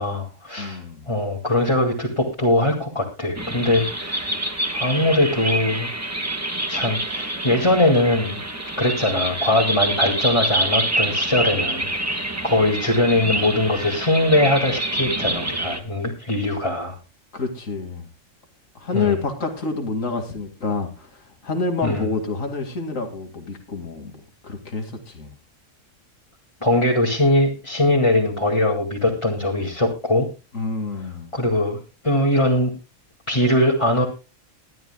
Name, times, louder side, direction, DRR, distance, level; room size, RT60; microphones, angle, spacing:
voice 1, 0.0-4.5 4.7-5.9 6.7-8.4 8.8-16.9 18.9-19.1 21.8-22.1 26.6-30.3 31.3-32.7 33.3-34.1, left 1 dB, 20° left, -2 dB, 2.3 m, -21 dB
voice 2, 0.6-1.1 17.3-18.0 18.7-24.1 24.4-25.3 30.5-31.3, left 3 dB, 85° left, 5 dB, 2.7 m, -28 dB
sound 1, 3.4-15.8, right 1 dB, 10° right, 1.3 m, -26 dB
21.0 x 12.5 x 2.2 m, 0.29 s
omnidirectional pair, 1.3 m